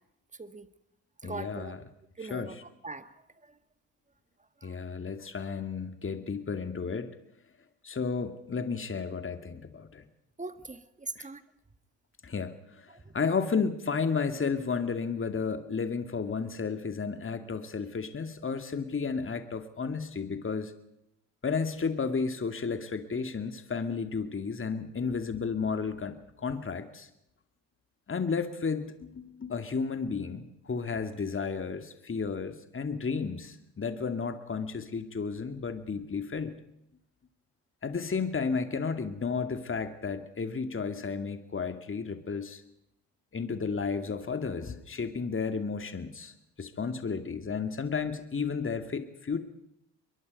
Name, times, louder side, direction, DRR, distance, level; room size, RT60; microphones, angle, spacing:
voice 1, 0.3-0.7 1.2-1.8 2.2-3.6 4.6-4.9 10.4-11.4 12.9-13.2, right 3 dB, 15° right, 11 dB, 1.9 m, -42 dB
voice 2, 1.2-1.8 2.3-2.5 4.6-7.1 7.8-10.0 11.2-11.3 12.2-12.9 13.1-20.7 21.4-27.1 28.1-36.5 37.8-42.6 43.3-46.3 46.6-49.4, left 5 dB, 30° left, 8 dB, 2.3 m, -32 dB
25.0 x 22.0 x 5.4 m, 0.81 s
hypercardioid pair, 60°, 44 cm